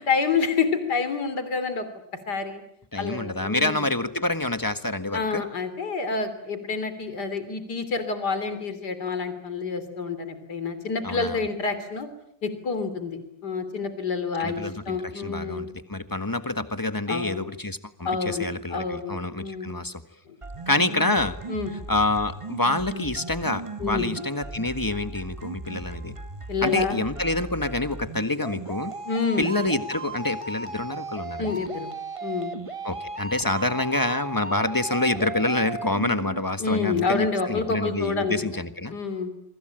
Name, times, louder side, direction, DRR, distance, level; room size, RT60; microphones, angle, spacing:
voice 1, 0.0-1.9 2.3-2.6 3.0-3.9 5.1-12.1 12.4-15.7 17.1-17.4 18.1-18.5 18.7-19.8 21.5-21.7 23.8-24.0 26.5-27.0 29.1-29.5 31.4-31.9 32.2-32.5 36.6-38.5 38.9-39.3, left 4 dB, 65° left, 11 dB, 3.7 m, -28 dB
voice 2, 2.9-5.4 11.0-11.4 14.4-20.0 20.7-21.4 21.9-26.1 26.6-28.9 29.4-31.6 32.8-38.9, left 2 dB, 10° left, 10 dB, 1.4 m, -27 dB
sound 1, 20.4-36.4, right 3 dB, 20° right, 1.3 m, -36 dB
27.0 x 24.5 x 9.0 m, 0.73 s
omnidirectional pair, 1.9 m